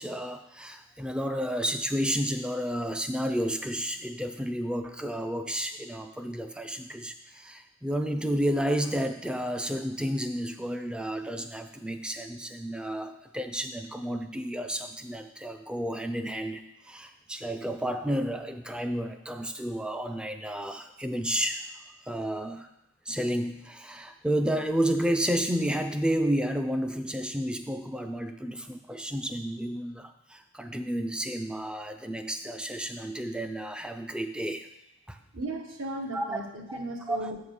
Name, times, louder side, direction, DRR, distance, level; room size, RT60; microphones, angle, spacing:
voice 1, 0.0-21.7 22.0-22.7 23.1-34.7 35.1-35.2 36.1-36.4 36.7-37.3, equal, 5° right, 7 dB, 0.3 m, -31 dB
voice 2, 35.3-37.4, right 1 dB, 75° right, 2 dB, 1.1 m, -36 dB
7.6 x 3.7 x 6.3 m, 0.87 s
head